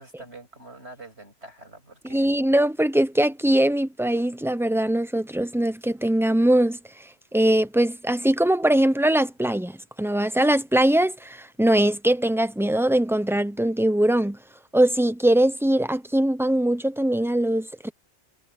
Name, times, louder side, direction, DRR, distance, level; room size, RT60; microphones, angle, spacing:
voice 1, 0.0-2.3, right 2 dB, 65° right, 7.4 m, -45 dB
voice 2, 2.1-6.8 7.3-14.4 14.7-17.9, right 1 dB, ahead, 0.7 m, -21 dB
omnidirectional pair, 1.2 m